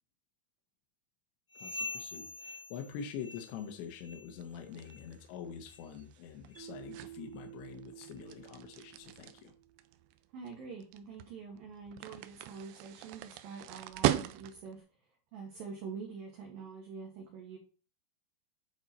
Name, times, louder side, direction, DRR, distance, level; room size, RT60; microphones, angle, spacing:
sound 1, 1.5-3.7 4.0-4.4 4.8-5.1 5.7-5.8 6.5-6.6 7.4-7.5, left 3 dB, 50° left, 1.4 m, -44 dB
voice 1, 1.6-9.5, left 7 dB, 75° left, 4 dB, 3.0 m, -45 dB
sound 2, 4.4-14.8, right 14 dB, 85° right, 2.4 m, -39 dB
Mallet percussion, 6.5-9.8, right 12 dB, 45° right, 1.5 m, -51 dB
voice 2, 10.3-14.8 15.3-17.6, right 5 dB, 70° right, 0 dB, 2.3 m, -45 dB
9.8 x 4.4 x 4.1 m, 0.38 s
omnidirectional pair, 5.5 m